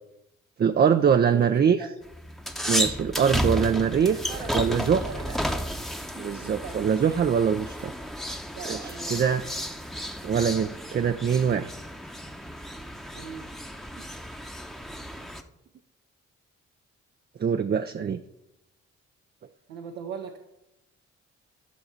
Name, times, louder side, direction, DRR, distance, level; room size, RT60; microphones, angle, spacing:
voice 1, 0.6-1.8 2.7-5.0 6.2-7.9 8.7-9.4 10.2-11.7 17.4-18.2, right 7 dB, 30° right, 8 dB, 0.5 m, -23 dB
voice 2, 1.3-1.9 4.0-5.4 6.3-6.9 8.5-9.5 13.1-13.5 19.7-20.4, right 6 dB, 75° right, 3 dB, 0.9 m, -40 dB
sound 1, 2.0-15.4, equal, ahead, 0.9 m, -33 dB
11.5 x 6.5 x 4.4 m, 0.90 s
hypercardioid pair, 40°, 37 cm